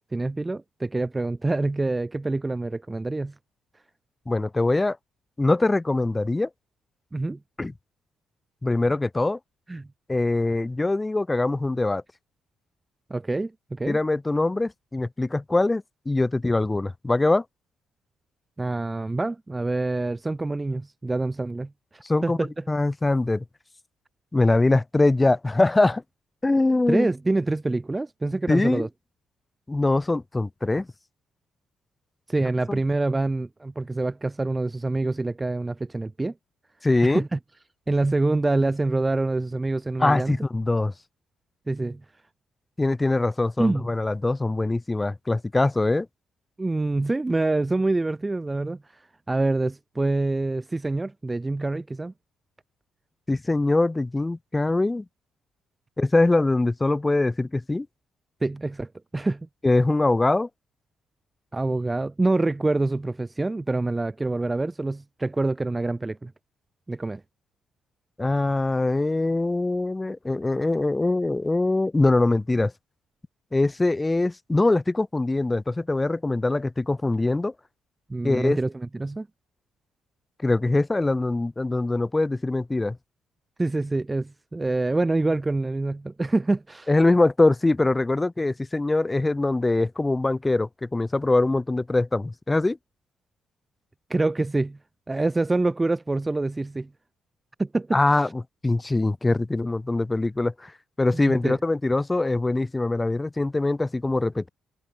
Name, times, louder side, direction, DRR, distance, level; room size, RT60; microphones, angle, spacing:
voice 1, 0.1-3.3 7.1-7.4 9.7-9.9 13.1-14.0 18.6-22.5 26.9-28.9 32.3-36.3 37.0-37.4 37.9-40.4 41.7-42.0 43.6-43.9 46.6-49.0 49.3-52.1 58.4-59.5 61.5-66.3 66.9-67.2 78.1-79.3 83.6-86.9 94.1-94.8 95.1-96.9 97.6-98.3 101.1-101.6, right 2 dB, 20° right, 0.6 m, -26 dB
voice 2, 4.3-5.0 5.4-6.5 7.6-7.7 8.6-9.4 10.1-12.0 13.9-17.4 22.0-22.4 22.7-23.4 24.3-26.0 26.4-27.1 28.5-28.9 29.7-30.9 32.7-32.8 36.8-37.2 40.0-40.9 42.8-46.1 53.3-55.0 56.0-57.9 59.6-60.5 68.2-72.7 73.5-77.5 78.2-78.6 80.4-83.0 86.9-92.8 97.9-98.3 98.6-100.7 101.0-104.5, left 2 dB, 15° left, 1.8 m, -23 dB
cardioid pair, 90°, 0 cm